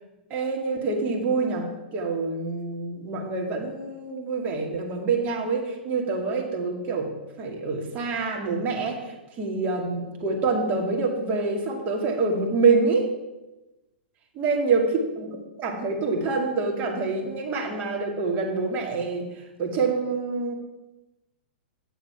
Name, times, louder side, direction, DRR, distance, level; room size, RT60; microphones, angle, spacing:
voice 1, 0.3-7.1 7.4-9.0 9.4-13.1 14.4-14.9 15.2-19.3 19.6-20.5, right 4 dB, 35° right, 1 dB, 2.3 m, -26 dB
9.4 x 7.1 x 5.8 m, 1.1 s
hypercardioid pair, 120°, 6 cm